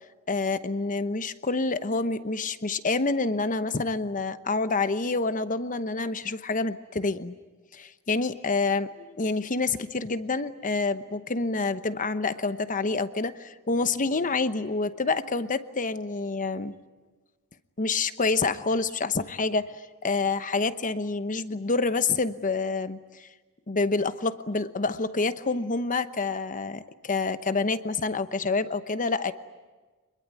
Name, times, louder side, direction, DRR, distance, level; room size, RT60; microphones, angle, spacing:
voice 1, 0.3-7.4 7.7-16.8 17.8-23.3 23.7-29.3, left 3 dB, 35° left, 12 dB, 1.0 m, -27 dB
25.5 x 22.0 x 9.6 m, 1.3 s
head